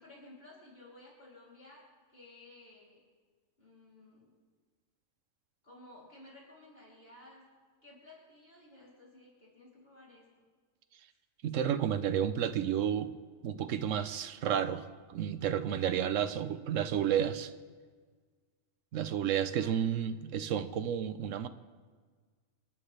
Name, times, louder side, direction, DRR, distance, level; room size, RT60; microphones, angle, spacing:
voice 1, 0.0-1.8 2.1-3.0 3.6-4.3 5.6-7.4 7.8-10.3 11.1-11.2 19.5-19.8, left 2 dB, 50° left, -6 dB, 3.5 m, -55 dB
voice 2, 11.4-13.1 13.4-17.5 18.9-21.5, right 9 dB, 80° right, 12 dB, 1.1 m, -31 dB
27.0 x 11.0 x 3.3 m, 1.5 s
omnidirectional pair, 1.3 m